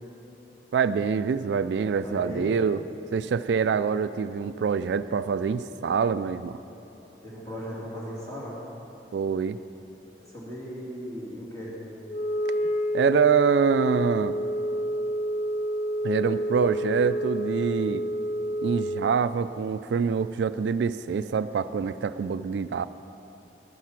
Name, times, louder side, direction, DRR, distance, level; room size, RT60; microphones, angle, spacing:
voice 1, 0.7-2.8 3.1-6.6 9.1-9.6 12.9-14.4 16.0-18.0 18.6-22.9, right 6 dB, 80° right, 13 dB, 0.3 m, -25 dB
voice 2, 2.0-2.5 7.2-8.6 10.2-11.8, equal, 20° left, -6 dB, 2.8 m, -37 dB
Wind instrument woodwind instrument, 12.1-19.2, equal, 40° left, 0.4 m, -29 dB
11.5 x 11.0 x 5.8 m, 2.9 s
head